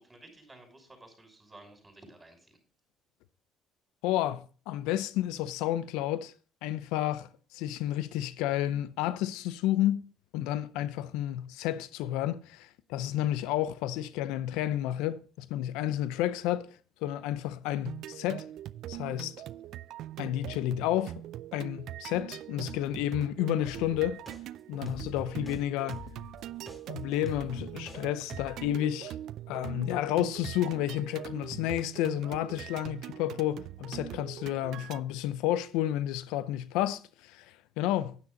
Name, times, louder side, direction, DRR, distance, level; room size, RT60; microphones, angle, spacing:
voice 1, 0.0-2.5, right 2 dB, 20° right, 6.1 m, -53 dB
voice 2, 4.0-6.3 6.6-10.0 10.3-16.7 17.0-18.5 18.9-19.3 20.2-21.2 21.5-24.2 24.7-26.1 26.9-29.1 29.5-38.2, left 13 dB, 85° left, 0.5 m, -31 dB
sound 1, 17.9-35.0, right 13 dB, 70° right, 0.4 m, -42 dB
sound 2, 23.6-24.4 24.9-25.6 25.9-28.0 28.3-28.7, left 1 dB, 15° left, 3.2 m, -45 dB
10.0 x 9.5 x 4.0 m
supercardioid pair, 70°, 0 cm